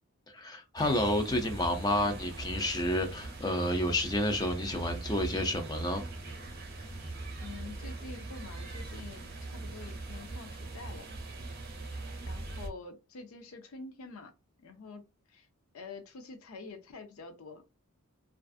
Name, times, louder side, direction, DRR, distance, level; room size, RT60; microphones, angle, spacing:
voice 1, 0.3-6.0, left 1 dB, 20° left, 0.4 m, -30 dB
sound 1, 0.8-12.7, right 2 dB, 45° right, 0.6 m, -41 dB
voice 2, 7.4-11.1 12.2-14.3 14.6-15.5 15.7-17.8, left 3 dB, 70° left, 0.5 m, -47 dB
2.5 x 2.3 x 2.4 m
head